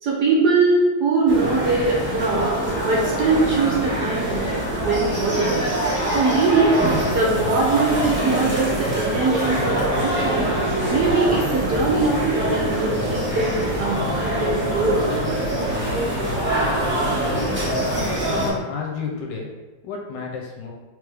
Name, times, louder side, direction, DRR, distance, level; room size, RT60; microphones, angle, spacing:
voice 1, 0.0-2.5 2.8-4.5 4.8-5.6 6.1-6.8 7.1-10.5 10.8-15.1, right 3 dB, 70° right, -3 dB, 1.1 m, -22 dB
sound 1, 1.3-18.5, right 1 dB, 10° right, 0.9 m, -24 dB
sound 2, 6.6-18.6, left 4 dB, 45° left, 0.9 m, -33 dB
voice 2, 17.7-19.5 19.8-20.7, left 5 dB, 75° left, -1 dB, 1.1 m, -31 dB
3.4 x 3.3 x 3.3 m, 1.2 s
omnidirectional pair, 2.1 m